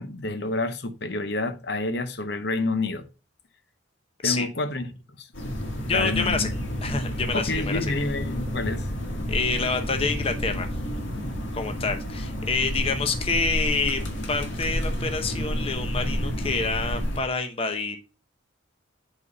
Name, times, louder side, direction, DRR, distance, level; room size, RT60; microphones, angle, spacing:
voice 1, 0.0-3.1 4.2-4.9 5.2-5.3 5.9-6.5 7.3-8.9, left 2 dB, 60° left, 0.8 m, -28 dB
sound 1, 5.3-17.2, equal, 75° left, 1.9 m, -30 dB
voice 2, 5.8-6.5 6.8-7.9 9.3-10.7 11.5-14.0 14.3-18.0, left 4 dB, 30° left, 0.8 m, -27 dB
8.1 x 4.1 x 5.1 m
head